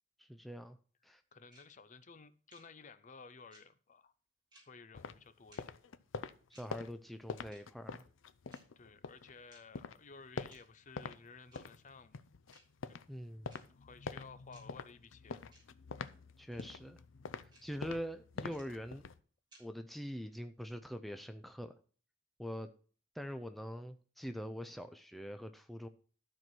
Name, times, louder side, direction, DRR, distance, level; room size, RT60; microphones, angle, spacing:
voice 1, 0.2-0.8 1.0-1.2 6.5-8.0 13.1-13.5 16.4-17.0 17.6-19.0 19.6-21.8 22.4-22.7 23.1-25.9, equal, ahead, 0.4 m, -44 dB
voice 2, 1.3-4.1 4.6-5.6 8.8-12.2 12.9-13.0 13.7-15.5, left 4 dB, 40° left, 0.6 m, -55 dB
sound 1, 1.5-1.6 2.5-2.6 3.5-3.6 4.5-4.6 5.5-5.6 6.5-6.6 7.5-7.6 8.5-8.6 9.5-9.6 10.5-10.6 11.5-11.6 12.5-12.6 13.5-13.6 14.5-14.6 15.5-15.6 16.5-16.6 17.5-17.6 18.5-18.6 19.5-19.6, right 2 dB, 25° right, 3.7 m, -61 dB
sound 2, 4.9-9.3 9.7-11.2 11.5-19.2, left 5 dB, 85° left, 0.5 m, -46 dB
12.5 x 4.6 x 6.0 m
head